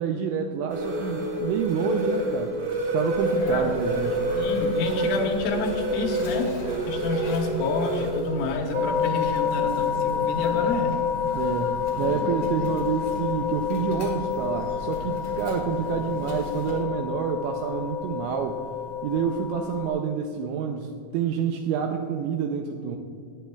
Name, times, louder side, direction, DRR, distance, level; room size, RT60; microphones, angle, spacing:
voice 1, 0.0-2.5 2.9-4.3 8.6-8.7 11.4-18.6 19.0-23.0, right 7 dB, 85° right, 4 dB, 2.6 m, -28 dB
sound 1, 0.7-8.1, right 1 dB, 55° right, 1.6 m, -28 dB
Sneeze, 3.1-16.9, left 2 dB, 55° left, 1.7 m, -39 dB
voice 2, 3.4-3.8 4.4-6.5 6.9-11.0, left 3 dB, 80° left, 2 dB, 3.3 m, -28 dB
sound 2, 8.7-19.9, left 8 dB, 30° left, 0.7 m, -29 dB
16.5 x 10.0 x 2.3 m, 2.3 s
omnidirectional pair, 5.7 m